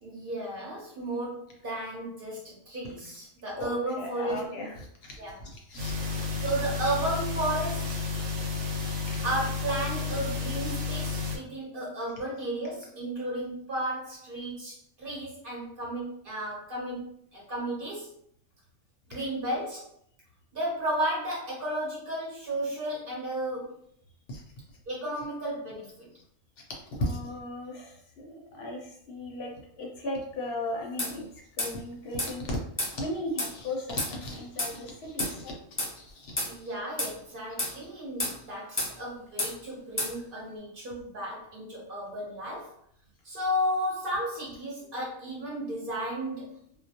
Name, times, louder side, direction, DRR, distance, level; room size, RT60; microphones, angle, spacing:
voice 1, 0.0-4.5 5.2-5.4 6.4-8.1 9.2-18.1 19.1-19.9 20.5-23.7 24.9-26.1 36.4-42.7 43.2-46.8, right 1 dB, 50° right, -5 dB, 0.8 m, -33 dB
voice 2, 3.6-6.0 9.1-9.2 24.3-24.4 26.9-29.5 29.8-31.3 31.6-32.6 32.9-35.5 35.9-36.4, left 1 dB, 65° left, 0 dB, 0.7 m, -36 dB
sound 1, 5.8-11.4, left 4 dB, 80° right, 1.0 m, -31 dB
sound 2, 31.0-31.1 31.6-31.7 32.2-32.3 32.8-32.9 33.4-33.5 34.0-34.1 34.6-34.7 35.2-35.3 35.8-35.9 36.4-36.5 37.0-37.1 37.6-37.7 38.2-38.4 38.8-38.9 39.4-39.5 40.0-40.1, left 1 dB, 20° left, 0.4 m, -30 dB
2.2 x 2.0 x 2.7 m, 0.68 s
omnidirectional pair, 1.4 m